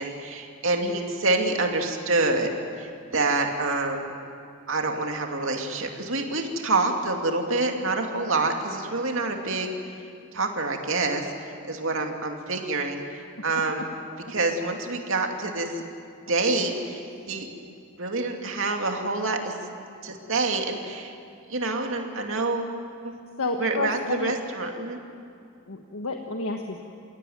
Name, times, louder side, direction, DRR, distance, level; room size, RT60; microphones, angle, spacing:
voice 1, 0.0-4.1 4.7-9.7 10.3-11.3 11.7-13.0 13.4-13.9 14.3-15.7 16.3-17.5 18.0-19.5 20.0-21.1 21.5-22.7 23.0-23.1 23.6-25.0, right 3 dB, 65° right, 3 dB, 2.6 m, -27 dB
voice 2, 23.4-24.4 25.7-26.8, left 3 dB, 85° left, 3 dB, 1.5 m, -30 dB
28.0 x 17.0 x 9.4 m, 2.5 s
head